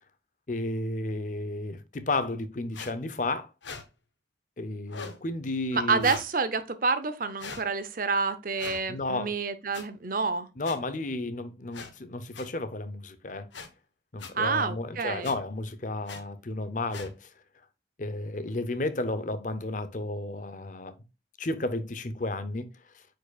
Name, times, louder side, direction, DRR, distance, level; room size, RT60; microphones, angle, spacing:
voice 1, 0.5-3.5 4.6-6.1 8.9-9.3 10.6-13.5 14.1-17.3 18.0-20.9 21.4-22.7, left 2 dB, 45° left, 0.7 m, -32 dB
sound 1, 2.7-2.9 3.6-3.8 4.9-5.2 6.0-6.3 7.4-7.6 8.6-8.8 9.7-9.8 10.6-10.8 11.7-11.9 12.3-12.5 13.5-13.7 14.2-14.3 15.2-15.4 16.1-16.2 16.9-17.1, left 5 dB, 80° left, 1.2 m, -40 dB
voice 2, 5.7-10.5 14.3-15.3, right 4 dB, 50° right, 0.7 m, -28 dB
9.1 x 4.7 x 2.4 m
head